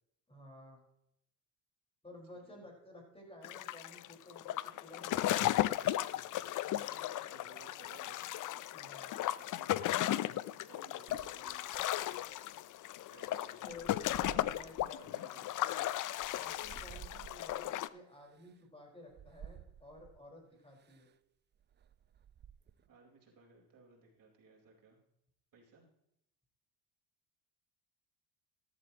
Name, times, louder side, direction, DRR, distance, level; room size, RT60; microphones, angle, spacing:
voice 1, 0.3-0.8 2.0-5.7 8.7-9.2 13.6-15.5 15.7-15.9 16.4-21.1, left 1 dB, 15° left, -1 dB, 4.6 m, -54 dB
sound 1, 3.4-17.9, left 14 dB, 45° left, 0.5 m, -36 dB
voice 2, 6.7-8.3 8.6-9.0 9.4-9.9 10.2-11.7 12.0-12.2 13.1-14.4 14.9-15.5 16.6-16.9 22.9-25.0 25.5-25.9, right 4 dB, 45° right, -1 dB, 4.2 m, -61 dB
sound 2, 11.1-12.3 13.1-15.0 15.5-17.7 18.4-18.5 19.1-20.2 20.8-21.1 21.5-22.9, right 9 dB, 25° right, 0.4 m, -54 dB
13.5 x 12.0 x 2.9 m, 0.78 s
supercardioid pair, 85°, 45 cm